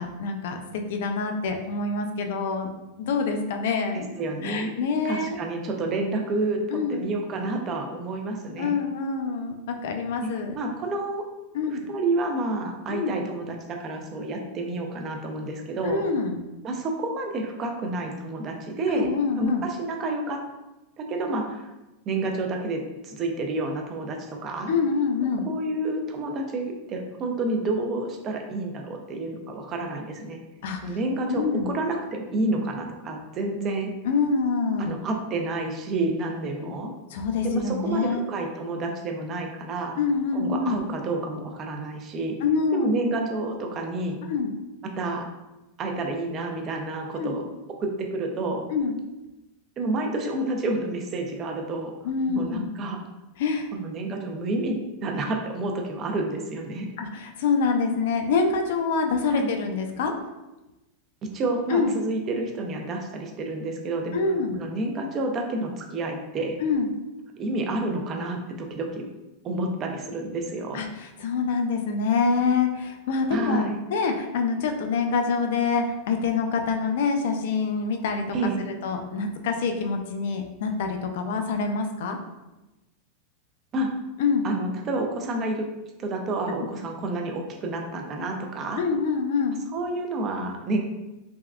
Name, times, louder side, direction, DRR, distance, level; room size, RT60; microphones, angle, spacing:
voice 1, 0.0-2.7 3.0-4.2 4.4-5.4 6.7-7.1 8.6-10.5 11.5-11.8 12.9-13.1 15.8-16.4 18.9-19.6 24.7-25.5 30.6-30.8 31.3-31.8 34.0-34.9 37.1-38.2 40.0-40.8 42.4-42.9 44.3-44.5 47.2-47.4 48.7-49.0 52.0-52.7 53.4-53.7 57.0-60.1 61.7-61.9 64.1-64.6 66.6-66.9 70.7-78.4 78.8-82.2 84.2-84.5 88.8-89.6, left 4 dB, 65° left, 5 dB, 0.4 m, -26 dB
voice 2, 3.9-4.7 5.0-6.6 6.9-8.8 10.2-11.2 11.9-16.0 16.6-19.1 19.4-20.4 21.0-21.7 22.1-24.7 25.4-30.4 30.8-33.9 34.8-36.9 37.4-40.0 40.3-42.4 42.7-44.2 45.0-45.3 45.8-47.4 47.8-48.6 49.8-51.9 52.3-53.0 53.7-56.9 59.3-59.5 61.2-64.2 64.6-66.6 67.4-69.0 69.4-70.8 73.3-73.8 78.3-78.6 83.7-83.9 84.4-85.7 86.0-88.8 89.7-90.8, right 2 dB, 25° right, 3 dB, 0.3 m, -29 dB
3.4 x 2.2 x 2.3 m, 1.0 s
supercardioid pair, 160°, 0 cm